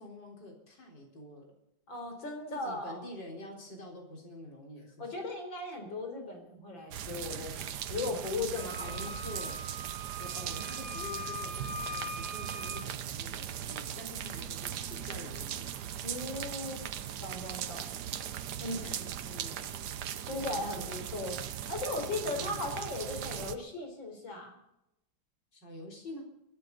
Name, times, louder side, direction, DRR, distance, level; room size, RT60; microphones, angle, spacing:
voice 1, 0.0-1.5 2.5-5.1 8.8-9.6 10.2-15.7 18.6-19.8 20.3-21.0 22.2-22.6 25.5-26.2, left 1 dB, 65° left, 0 dB, 4.7 m, -47 dB
voice 2, 1.9-3.0 5.0-8.9 10.4-10.7 16.0-16.8 17.2-17.9 18.6-18.8 20.3-21.4 21.7-24.6, left 2 dB, 85° left, 3 dB, 4.7 m, -37 dB
sound 1, 6.9-23.6, right 10 dB, 65° right, 1.3 m, -39 dB
Wind instrument woodwind instrument, 8.5-12.9, left 1 dB, 30° right, 0.5 m, -41 dB
24.0 x 12.5 x 4.0 m, 0.85 s
omnidirectional pair, 2.0 m